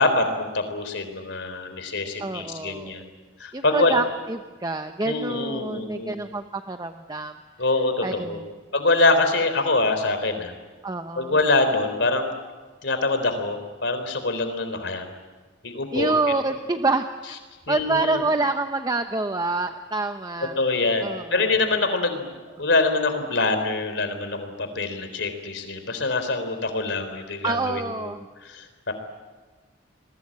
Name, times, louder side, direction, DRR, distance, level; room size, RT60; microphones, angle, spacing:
voice 1, 0.0-3.1 3.4-4.0 5.0-6.2 7.6-8.4 8.7-10.5 11.2-12.3 12.8-15.1 15.6-16.1 17.7-18.2 20.6-22.3 22.6-28.1 28.4-28.9, left 3 dB, 65° left, 8 dB, 3.8 m, -24 dB
voice 2, 2.2-3.0 3.5-7.3 8.0-8.4 10.8-11.4 15.9-17.4 17.7-20.6 21.0-21.6 27.4-28.2, right 3 dB, 20° right, 7 dB, 0.8 m, -27 dB
28.0 x 21.5 x 8.8 m, 1.3 s
head